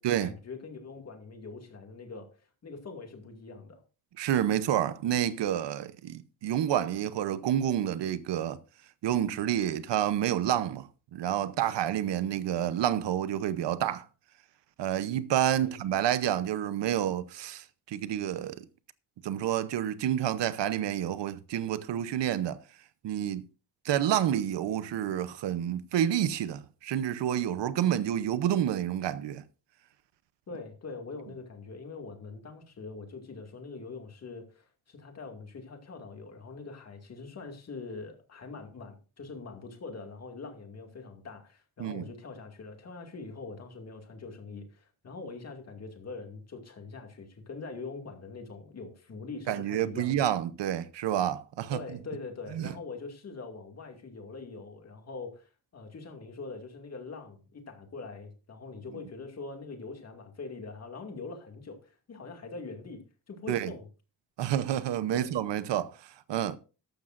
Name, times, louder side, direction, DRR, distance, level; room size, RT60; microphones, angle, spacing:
voice 1, 0.2-3.8 15.6-15.7 30.5-50.3 51.7-63.0 63.3-63.9 65.1-65.3, left 4 dB, 40° left, 2.3 m, -43 dB
voice 2, 4.2-8.6 9.0-14.1 14.8-18.6 19.2-22.6 23.0-23.4 23.8-29.4 41.8-42.1 49.5-51.8 52.5-52.7 63.5-63.7 64.4-66.6, right 11 dB, 90° right, 0.9 m, -29 dB
14.0 x 12.0 x 2.6 m
wide cardioid pair, 180°, 41 cm